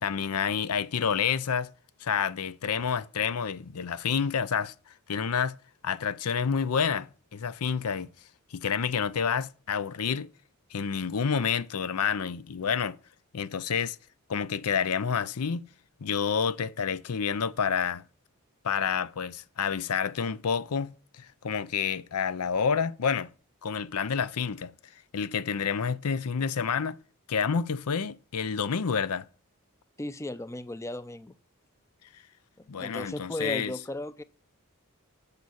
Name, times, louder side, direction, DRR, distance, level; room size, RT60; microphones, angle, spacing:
voice 1, 0.0-1.7 2.0-4.7 5.1-5.5 5.8-8.1 8.5-10.3 10.7-13.0 13.3-14.0 14.3-15.7 16.0-18.0 18.6-23.3 23.6-24.7 25.1-27.0 27.3-29.2 32.7-33.7, left 6 dB, 75° left, 0.6 m, -29 dB
voice 2, 30.0-31.3 32.6-34.2, left 1 dB, 15° left, 0.5 m, -36 dB
8.3 x 6.8 x 6.3 m
head